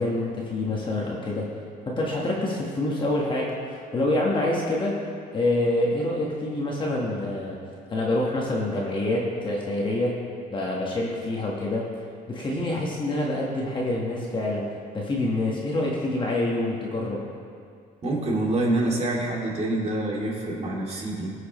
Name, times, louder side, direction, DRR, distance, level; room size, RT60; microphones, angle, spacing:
voice 1, 0.0-1.5 1.9-5.0 5.3-7.6 7.9-10.1 10.5-11.8 12.3-14.6 14.9-17.2, left 1 dB, 30° left, -3 dB, 1.4 m, -26 dB
voice 2, 18.0-21.3, right 2 dB, 40° right, -3 dB, 2.5 m, -26 dB
18.5 x 6.4 x 3.1 m, 2.4 s
cardioid pair, 110°, 17 cm